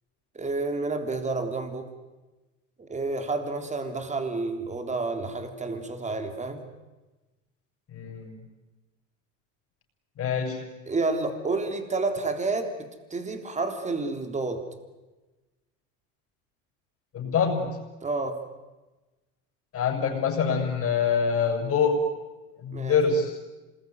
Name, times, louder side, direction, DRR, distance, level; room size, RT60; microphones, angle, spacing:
voice 1, 0.4-1.9 2.8-6.6 10.9-14.6 18.0-18.4 22.7-23.0, right 3 dB, 20° right, 7 dB, 3.5 m, -30 dB
voice 2, 7.9-8.3 10.2-10.6 17.1-17.8 19.7-22.0 22.6-23.4, left 6 dB, 40° left, 3 dB, 6.9 m, -25 dB
27.0 x 21.0 x 9.5 m, 1.1 s
supercardioid pair, 110°, 36 cm